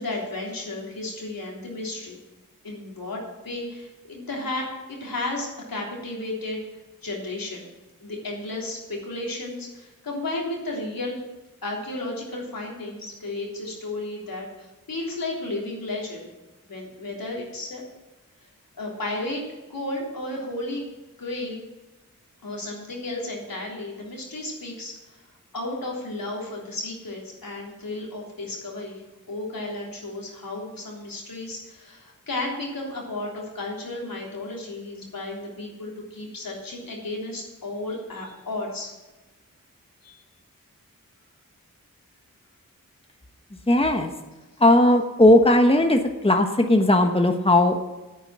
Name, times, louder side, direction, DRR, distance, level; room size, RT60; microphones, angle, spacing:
voice 1, 0.0-2.2 2.6-6.6 7.0-7.7 8.0-11.2 11.6-16.3 16.6-17.8 18.8-19.4 19.7-20.9 21.2-21.6 22.4-25.2 25.5-29.0 29.3-38.9 40.0-40.2, left 2 dB, 80° left, -2 dB, 3.4 m, -33 dB
voice 2, 43.7-44.1 44.6-47.8, left 1 dB, 15° left, 5 dB, 1.3 m, -17 dB
9.3 x 9.2 x 7.6 m, 1.1 s
cardioid pair, 40°, 34 cm